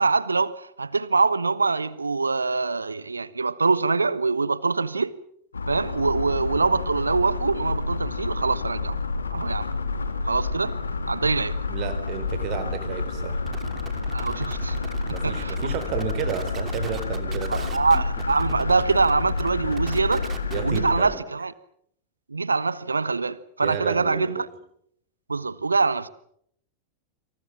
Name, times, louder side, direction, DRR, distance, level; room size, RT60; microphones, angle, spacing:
voice 1, 0.0-5.1 5.7-8.9 9.3-9.7 10.2-10.7 11.1-11.6 14.1-14.8 15.1-15.7 17.5-20.3 20.6-21.5 22.3-24.5 25.3-26.1, right 4 dB, 80° right, 1.2 m, -24 dB
sound 1, 5.5-21.0, left 4 dB, 75° left, 2.7 m, -29 dB
voice 2, 11.7-13.5 15.1-17.7 20.5-21.2 23.6-24.4, right 9 dB, 40° right, 3.9 m, -32 dB
sound 2, 13.4-21.0, right 8 dB, 25° right, 2.8 m, -40 dB
28.0 x 27.0 x 6.1 m
figure-of-eight pair, 90°, 0 cm